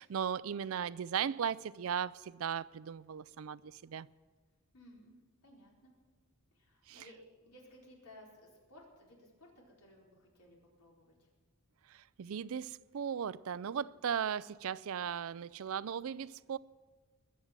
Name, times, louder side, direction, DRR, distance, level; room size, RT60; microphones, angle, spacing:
voice 1, 0.0-4.1 6.9-7.0 11.9-16.6, right 8 dB, 70° right, 0.4 m, -37 dB
voice 2, 4.7-5.9 6.5-11.3, left 1 dB, 90° left, 4.5 m, -58 dB
21.5 x 7.6 x 7.4 m
head